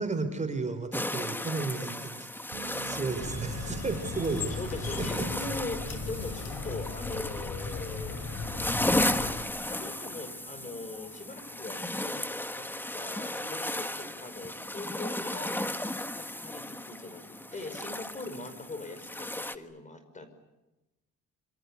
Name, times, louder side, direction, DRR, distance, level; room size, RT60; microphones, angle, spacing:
voice 1, 0.0-2.3 2.8-5.2, right 3 dB, 25° right, 8 dB, 4.0 m, -33 dB
sound 1, 0.9-19.6, left 1 dB, 5° left, 1.4 m, -35 dB
sound 2, 2.5-10.0 10.3-10.8, right 6 dB, 75° right, 4.0 m, -49 dB
sound 3, 3.2-9.4, left 4 dB, 55° left, 5.3 m, -37 dB
voice 2, 4.5-8.2 9.1-12.2 12.5-12.7 12.9-15.7 16.1-20.3, left 2 dB, 25° left, 10 dB, 5.5 m, -41 dB
27.0 x 27.0 x 8.3 m, 0.99 s
cardioid pair, 135°, 31 cm